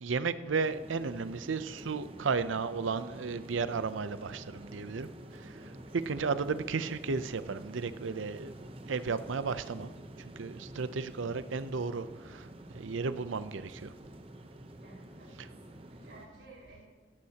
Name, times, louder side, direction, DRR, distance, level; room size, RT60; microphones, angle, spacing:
voice 1, 0.0-8.6 8.9-9.9 10.4-12.5 12.7-13.9, right 4 dB, 85° right, 13 dB, 0.6 m, -34 dB
sound 1, 0.6-16.3, right 1 dB, 30° right, 0.8 m, -48 dB
voice 2, 14.8-16.9, right 2 dB, 65° right, -3 dB, 4.8 m, -55 dB
16.0 x 15.0 x 2.9 m, 1.4 s
head